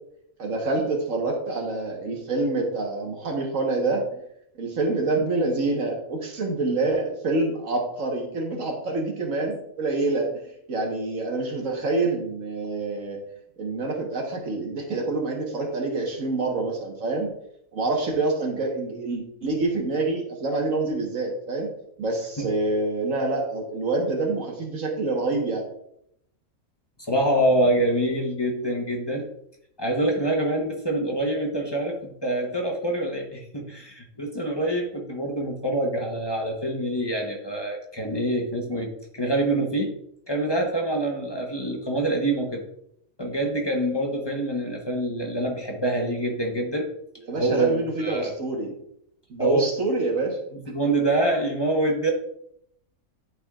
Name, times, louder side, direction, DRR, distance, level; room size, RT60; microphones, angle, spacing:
voice 1, 0.4-4.2 4.6-10.3 10.7-13.2 13.6-17.3 17.7-21.7 22.0-25.6 47.3-48.7 49.3-50.4, right 2 dB, 65° right, 0 dB, 1.6 m, -26 dB
voice 2, 27.0-29.3 29.8-39.9 40.3-42.6 43.2-46.9 47.3-48.3 49.4-49.6 50.5-52.1, right 1 dB, 20° left, 1 dB, 0.7 m, -25 dB
11.5 x 4.3 x 2.4 m, 0.73 s
omnidirectional pair, 1.5 m